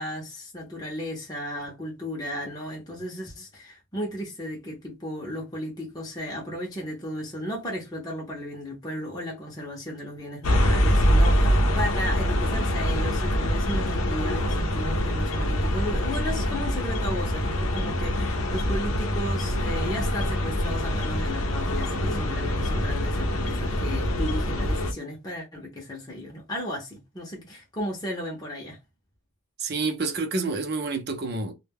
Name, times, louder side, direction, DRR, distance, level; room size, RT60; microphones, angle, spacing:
voice 1, 0.0-28.8, equal, 20° left, 0.6 m, -34 dB
sound 1, 10.4-24.9, equal, 85° left, 0.6 m, -24 dB
voice 2, 29.6-31.5, right 3 dB, 50° right, 0.6 m, -28 dB
2.2 x 2.1 x 3.4 m
head